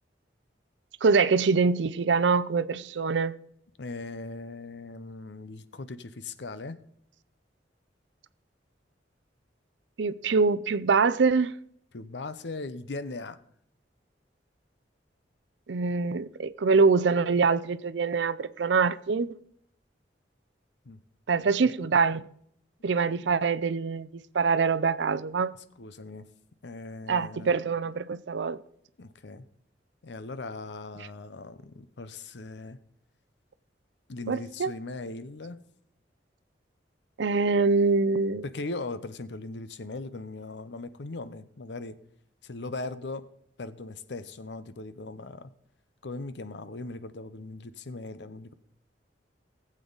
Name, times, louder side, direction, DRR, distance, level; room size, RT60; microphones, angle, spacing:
voice 1, 1.0-3.3 10.0-11.5 15.7-19.3 21.3-22.2 22.8-24.1 24.3-25.5 27.1-28.6 34.3-34.7 37.2-38.4, right 4 dB, 75° right, 0.5 m, -24 dB
voice 2, 3.8-6.8 11.9-13.4 20.8-21.0 21.4-21.7 25.8-26.3 26.6-27.5 29.0-29.5 30.0-32.8 34.1-35.6 38.4-42.0 42.4-43.3 43.6-45.5 46.0-48.5, left 3 dB, 70° left, 0.7 m, -39 dB
18.5 x 7.6 x 3.9 m
head